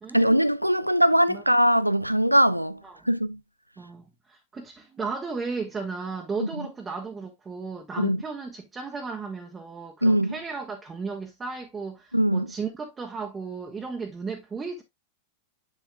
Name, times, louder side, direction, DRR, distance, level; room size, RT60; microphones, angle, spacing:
voice 1, 0.1-2.8 3.1-3.4 6.4-6.5 8.0-8.2 10.0-10.3 12.1-12.5, equal, 90° right, 0.5 m, -21 dB
voice 2, 3.8-14.8, right 4 dB, 15° right, 1.2 m, -35 dB
7.5 x 7.1 x 2.3 m
figure-of-eight pair, 90°, 0 cm